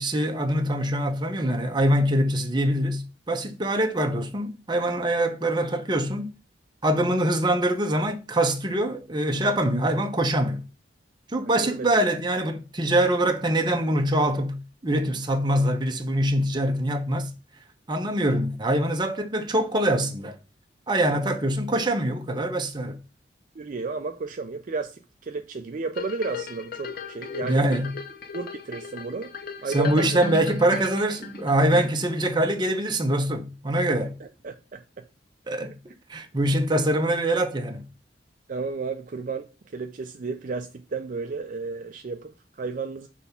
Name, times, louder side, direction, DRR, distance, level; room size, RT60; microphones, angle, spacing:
voice 1, 0.0-6.3 6.8-10.6 11.3-17.3 17.9-20.4 20.9-23.0 27.4-27.9 29.7-34.1 35.5-35.7 36.1-37.8, right 1 dB, 25° right, 0.8 m, -24 dB
voice 2, 11.4-12.0 21.0-21.2 23.6-27.7 28.3-29.3 29.6-30.2 34.2-35.1 38.5-43.1, right 4 dB, 45° right, 0.4 m, -33 dB
sound 1, 25.9-32.2 32.7-32.8, left 4 dB, 55° left, 0.7 m, -36 dB
6.2 x 3.4 x 5.5 m
head